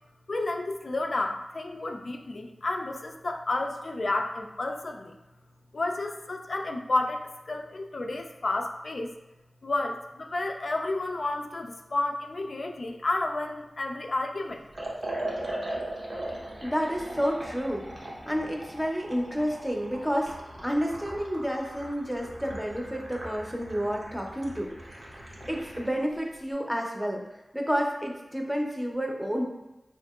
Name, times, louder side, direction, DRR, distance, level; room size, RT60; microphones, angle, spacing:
voice 1, 0.3-5.1 5.7-9.1 9.6-14.6, left 2 dB, 70° left, 3 dB, 0.3 m, -31 dB
Liquid, 14.7-25.9, right 1 dB, 60° right, 0.7 m, -39 dB
voice 2, 16.6-24.7 25.0-27.2 27.5-29.4, equal, 5° right, 0 dB, 0.6 m, -30 dB
3.6 x 2.8 x 2.3 m, 0.98 s
cardioid pair, 45°, 0 cm